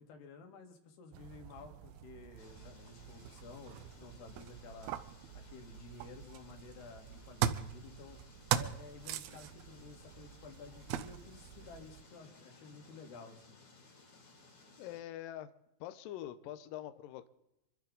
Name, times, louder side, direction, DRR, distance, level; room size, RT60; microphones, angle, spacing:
voice 1, 0.0-4.9 5.3-8.2 8.5-13.6, left 4 dB, 65° left, 4 dB, 3.9 m, -53 dB
sound 1, 1.1-12.0, right 10 dB, 80° right, 2.2 m, -41 dB
sound 2, 2.4-15.0, left 3 dB, 35° left, 3.6 m, -60 dB
voice 2, 14.8-15.5 15.8-17.3, left 12 dB, 85° left, 11 dB, 2.0 m, -44 dB
27.0 x 13.5 x 4.0 m, 0.91 s
omnidirectional pair, 5.1 m